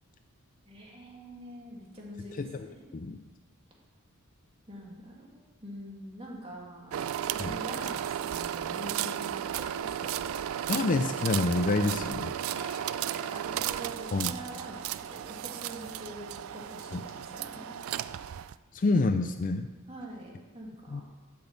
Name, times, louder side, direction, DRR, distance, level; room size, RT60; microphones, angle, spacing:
voice 1, 0.7-3.0 4.7-7.0 7.3-10.4 12.5-17.8 19.9-21.0, right 1 dB, 25° right, -2 dB, 2.1 m, -45 dB
sound 1, 6.9-18.5, right 10 dB, 70° right, 0.3 m, -34 dB
voice 2, 10.7-12.3 14.1-14.3 16.9-17.0 18.7-19.7 20.9-21.0, left 3 dB, 35° left, 8 dB, 0.4 m, -27 dB
8.5 x 6.1 x 7.3 m, 1.2 s
head